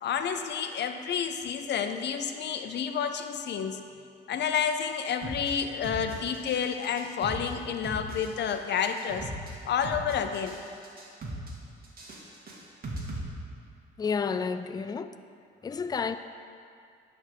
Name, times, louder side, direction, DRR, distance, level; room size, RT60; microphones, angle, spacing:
voice 1, 0.0-3.8 4.3-9.3 9.7-10.6, left 7 dB, 60° left, 7 dB, 0.6 m, -30 dB
sound 1, 5.2-5.5 5.8-6.6 6.8-7.5 7.8-8.5 8.8-9.5 9.8-10.6 10.8-11.5 11.8-13.2, right 1 dB, 50° right, 1.8 m, -38 dB
voice 2, 14.0-15.2 15.6-16.2, left 5 dB, 20° left, 11 dB, 0.3 m, -30 dB
10.0 x 3.6 x 6.5 m, 2.4 s
cardioid pair, 90°, 20 cm